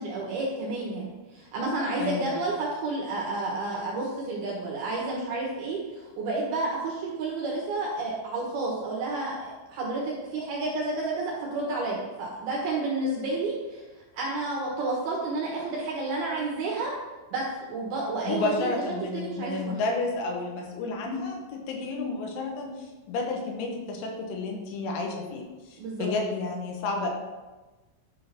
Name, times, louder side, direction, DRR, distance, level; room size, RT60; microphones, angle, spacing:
voice 1, 0.0-13.8 14.1-16.9 17.3-18.7 19.1-19.7 25.8-26.1, right 2 dB, 65° right, -3 dB, 2.6 m, -30 dB
voice 2, 2.0-2.4 18.3-25.4 25.7-27.1, left 3 dB, 75° left, 1 dB, 3.4 m, -31 dB
11.0 x 3.8 x 5.9 m, 1.2 s
omnidirectional pair, 5.8 m